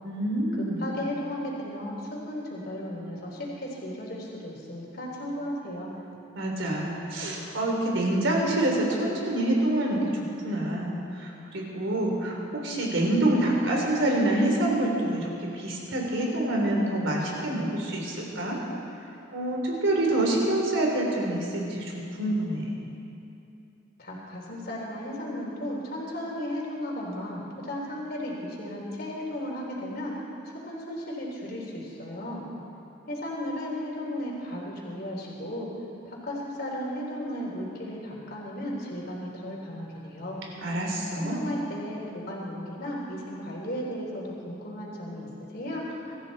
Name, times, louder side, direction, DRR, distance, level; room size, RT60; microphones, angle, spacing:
voice 1, 0.0-0.8 6.3-18.6 19.3-22.6 40.6-41.3, right 1 dB, 70° right, -1 dB, 3.6 m, -26 dB
voice 2, 0.8-5.9 24.0-30.1 30.6-32.5 33.1-35.7 36.0-40.5 41.2-45.8, left 1 dB, 50° left, -5 dB, 3.5 m, -35 dB
24.0 x 14.0 x 4.3 m, 2.7 s
head